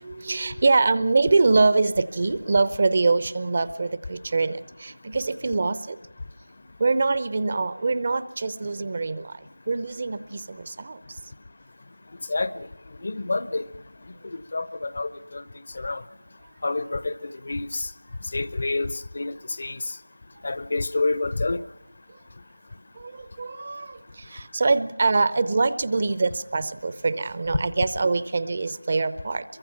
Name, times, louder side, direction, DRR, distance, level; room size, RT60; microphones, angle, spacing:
voice 1, 0.0-6.0 6.8-9.3 9.7-11.0 23.0-23.1 23.4-24.0 24.3-29.4, right 3 dB, 30° right, 16 dB, 0.6 m, -24 dB
voice 2, 12.3-12.7 13.0-13.6 14.2-15.4 15.7-16.0 16.6-17.9 18.3-20.0 20.4-21.6, left 3 dB, 35° left, 15 dB, 0.7 m, -28 dB
23.5 x 22.5 x 5.9 m, 0.96 s
figure-of-eight pair, 170°, 0 cm